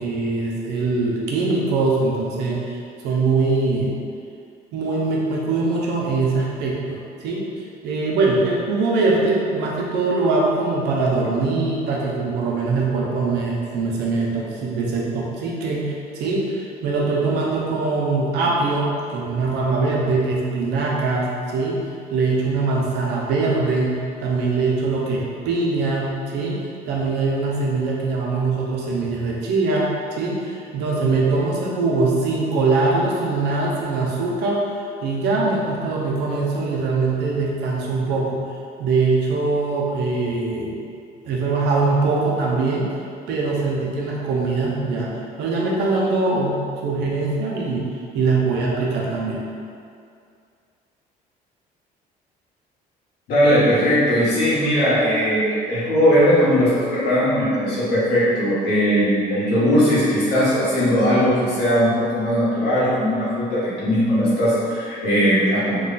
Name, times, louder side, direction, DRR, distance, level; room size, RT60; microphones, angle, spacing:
voice 1, 0.0-2.8 3.0-3.9 4.7-7.5 7.8-21.8 22.1-29.9 30.2-34.7 35.0-38.4 38.8-40.8 41.2-42.9 43.3-45.1 45.4-47.9 48.1-49.4, right 3 dB, 85° right, -3 dB, 0.7 m, -22 dB
voice 2, 53.3-65.8, equal, 85° left, -10 dB, 1.4 m, -19 dB
3.1 x 2.3 x 4.0 m, 2.4 s
cardioid pair, 110°, 17 cm